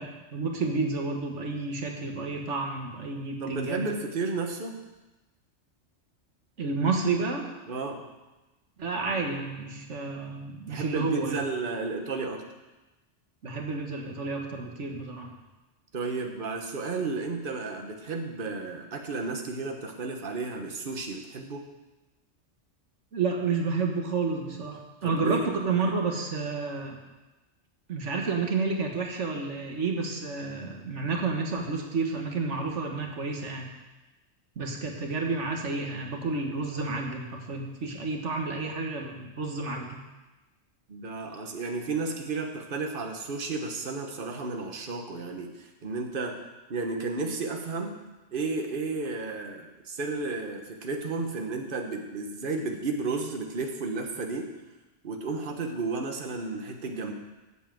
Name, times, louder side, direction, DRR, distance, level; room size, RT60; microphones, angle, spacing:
voice 1, 0.0-3.8 6.6-7.4 8.8-11.5 13.4-15.3 23.1-27.0 27.9-33.7 34.6-40.0, right 4 dB, 70° right, 2 dB, 1.7 m, -30 dB
voice 2, 3.4-4.8 7.7-8.0 10.7-12.4 15.9-21.7 25.0-25.5 40.9-46.4 46.7-48.0 48.3-54.5 55.0-57.1, right 3 dB, 45° right, 3 dB, 1.3 m, -32 dB
8.5 x 7.4 x 7.5 m, 1.1 s
omnidirectional pair, 1.3 m